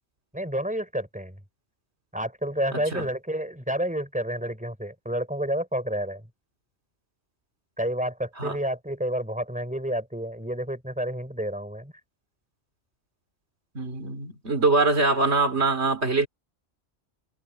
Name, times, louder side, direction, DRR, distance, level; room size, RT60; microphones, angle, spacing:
voice 1, 0.3-1.4 2.1-6.2 7.8-11.9, right 1 dB, 5° right, 5.5 m, -30 dB
voice 2, 13.8-16.3, right 3 dB, 85° right, 3.3 m, -23 dB
omnidirectional pair, 1.1 m